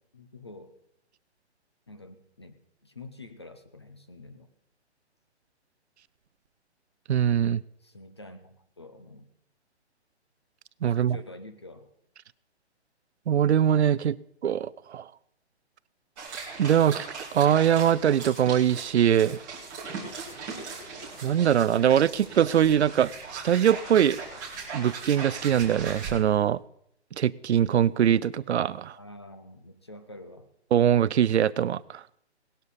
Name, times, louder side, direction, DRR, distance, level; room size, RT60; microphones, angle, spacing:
voice 1, 0.1-0.8 1.9-2.6 2.8-4.5 7.8-9.3 10.9-11.9 28.9-30.5, left 2 dB, 25° left, 9 dB, 0.5 m, -47 dB
voice 2, 7.1-7.6 10.8-11.2 13.3-14.2 14.4-15.0 16.6-19.4 21.2-24.2 24.7-26.6 27.2-29.0 30.7-32.0, right 9 dB, 70° right, 20 dB, 0.5 m, -22 dB
sound 1, 16.2-26.1, right 5 dB, 15° right, 2.1 m, -39 dB
sound 2, 19.9-26.4, left 3 dB, 55° left, 2.9 m, -53 dB
18.0 x 12.0 x 4.1 m, 0.72 s
hypercardioid pair, 170°, 34 cm